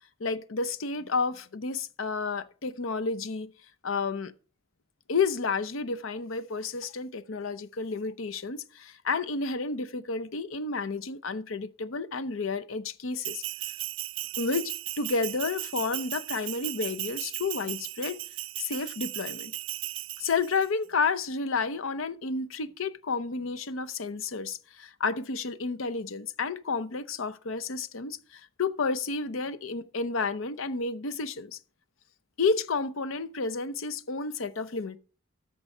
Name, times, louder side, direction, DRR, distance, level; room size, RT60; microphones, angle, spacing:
voice 1, 0.2-3.5 3.8-4.3 5.1-13.4 14.4-18.2 18.6-19.5 20.2-31.6 32.4-35.0, left 4 dB, 90° left, 0.7 m, -31 dB
Bell, 13.2-20.7, right 18 dB, 75° right, 0.4 m, -36 dB
13.5 x 4.7 x 5.4 m
head